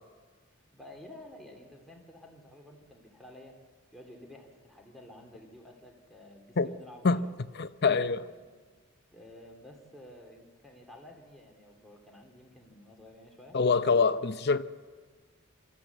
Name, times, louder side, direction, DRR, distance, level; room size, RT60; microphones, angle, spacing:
voice 1, 0.7-3.6 3.9-7.3 8.3-8.4 9.1-13.6, left 1 dB, ahead, 2.8 m, -51 dB
voice 2, 7.6-8.3 13.5-14.6, left 4 dB, 50° left, 0.7 m, -25 dB
24.0 x 14.0 x 8.2 m
head